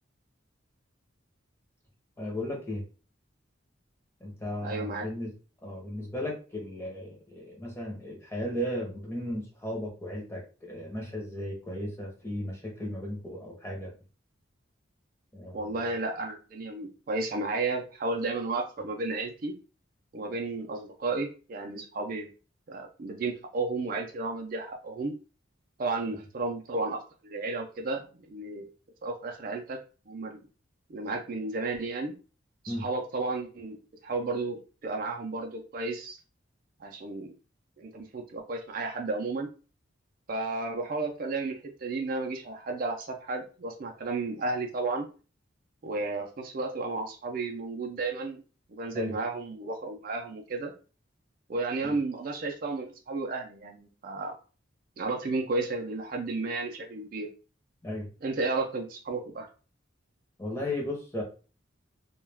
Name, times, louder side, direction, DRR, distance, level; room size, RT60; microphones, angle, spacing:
voice 1, 2.2-2.8 4.2-5.3 5.6-13.9 15.3-15.8 32.7-32.9 48.9-49.1 51.8-51.9 57.8-58.1 60.4-61.2, left 1 dB, 10° left, -1 dB, 0.7 m, -35 dB
voice 2, 4.6-5.1 15.5-19.5 20.1-22.3 22.7-25.2 25.8-28.7 29.0-29.8 30.1-30.4 30.9-32.1 32.6-36.2 36.8-37.3 37.8-39.5 40.3-45.1 45.8-48.4 48.7-50.7 51.5-54.4 55.0-57.3 58.2-59.5, right 3 dB, 45° right, 3 dB, 0.4 m, -33 dB
2.2 x 2.2 x 3.3 m, 0.35 s
head